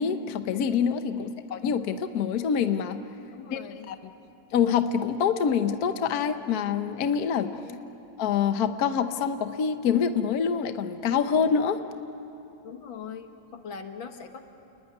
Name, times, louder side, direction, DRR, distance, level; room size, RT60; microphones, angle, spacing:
voice 1, 0.0-3.0 3.5-3.6 3.9-4.0 4.5-7.6 8.2-11.8, left 7 dB, 55° left, 8 dB, 1.4 m, -26 dB
voice 2, 3.3-3.9 7.4-7.8 12.6-14.4, left 7 dB, 85° left, 6 dB, 2.3 m, -41 dB
29.5 x 21.0 x 9.7 m, 2.9 s
omnidirectional pair, 2.1 m